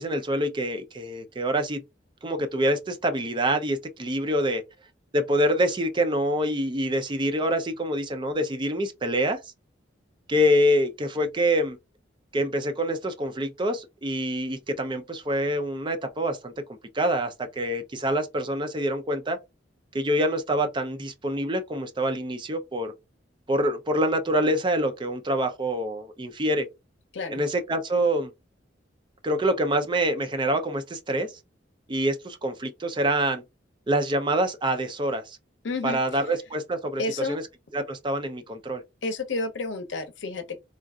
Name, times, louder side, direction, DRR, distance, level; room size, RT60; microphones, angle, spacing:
voice 1, 0.0-1.8 2.2-4.6 5.1-9.4 10.3-11.8 12.3-16.5 16.9-19.4 19.9-22.9 23.5-26.7 27.3-28.3 29.2-31.4 31.9-33.4 33.9-35.4 35.8-37.4 37.7-38.8, right 1 dB, 25° right, 0.5 m, -26 dB
voice 2, 35.6-36.0 37.0-37.4 39.0-40.6, left 3 dB, 75° left, 0.7 m, -30 dB
3.7 x 2.4 x 2.3 m
head